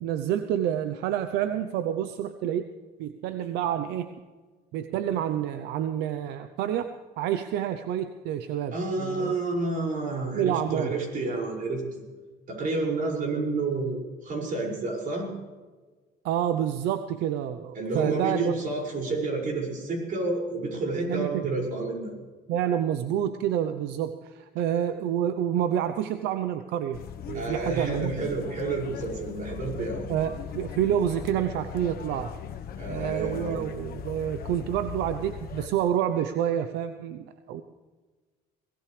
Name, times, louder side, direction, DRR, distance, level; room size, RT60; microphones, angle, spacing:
voice 1, 0.0-2.7 3.0-4.1 4.7-6.9 7.2-8.7 9.0-9.3 10.3-10.9 16.2-18.5 21.1-21.5 22.5-27.0 27.3-28.2 30.1-32.3 32.9-37.6, right 10 dB, 90° right, 9 dB, 0.8 m, -28 dB
voice 2, 8.7-12.1 12.5-15.3 17.7-22.1 27.3-30.1 32.8-33.6, right 3 dB, 55° right, -1 dB, 6.0 m, -30 dB
sound 1, 26.9-35.7, left 8 dB, 60° left, 1.2 m, -39 dB
23.0 x 18.0 x 3.4 m, 1.3 s
cardioid pair, 110°, 17 cm